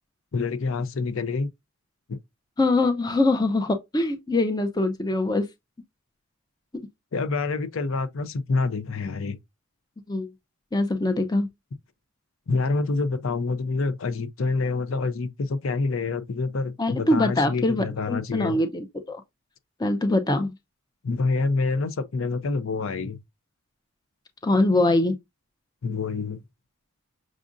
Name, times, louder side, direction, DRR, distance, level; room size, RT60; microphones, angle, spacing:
voice 1, 0.3-1.5 2.1-2.2 7.1-9.4 12.5-18.6 21.0-23.2 25.8-26.4, left 3 dB, 65° left, 0.5 m, -27 dB
voice 2, 2.6-5.5 10.1-10.3 10.7-11.5 16.8-19.2 19.8-20.5 24.4-25.2, left 2 dB, 20° left, 0.5 m, -23 dB
6.1 x 2.5 x 2.5 m
head